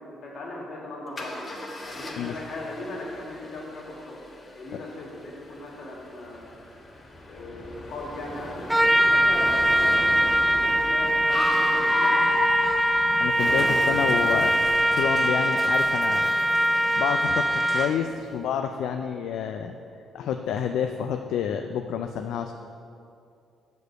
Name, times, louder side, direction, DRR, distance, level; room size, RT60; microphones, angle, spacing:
voice 1, 0.0-1.6 1.8-4.2 4.5-6.6 7.3-8.7 9.1-12.1, left 2 dB, 65° left, -3 dB, 1.9 m, -38 dB
Car, 1.2-18.0, left 2 dB, 35° left, 1.2 m, -35 dB
Trumpet, 8.7-18.0, right 1 dB, 5° right, 0.4 m, -22 dB
voice 2, 13.2-14.5 15.0-16.3 17.0-19.7 20.1-22.5, left 8 dB, 80° left, 6 dB, 0.3 m, -29 dB
6.2 x 5.2 x 6.6 m, 2.6 s
cardioid pair, 90°, 0 cm